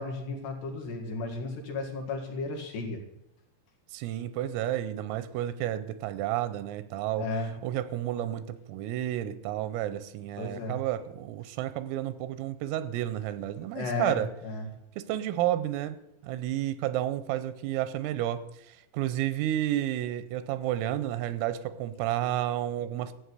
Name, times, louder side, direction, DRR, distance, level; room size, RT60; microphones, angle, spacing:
voice 1, 0.0-3.0 7.2-7.5 10.4-10.8 13.7-14.2 14.4-14.7, left 3 dB, 60° left, 2 dB, 3.5 m, -34 dB
voice 2, 3.9-7.3 7.6-14.3 15.0-16.0 16.2-18.4 18.7-23.2, right 13 dB, 85° right, 13 dB, 3.3 m, -31 dB
14.0 x 7.9 x 8.3 m, 0.82 s
omnidirectional pair, 6.0 m